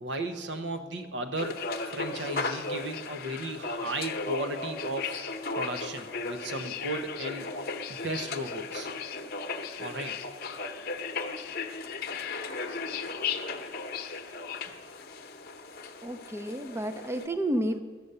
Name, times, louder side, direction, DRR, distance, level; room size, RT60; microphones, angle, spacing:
voice 1, 0.0-5.2 5.5-7.5 7.9-8.9 9.8-10.2, right 1 dB, 80° right, 7 dB, 0.9 m, -35 dB
sound 1, 1.4-17.3, left 4 dB, 55° left, 0.8 m, -36 dB
voice 2, 16.0-17.8, right 1 dB, 15° right, 9 dB, 0.5 m, -31 dB
12.5 x 8.1 x 6.7 m, 1.5 s
head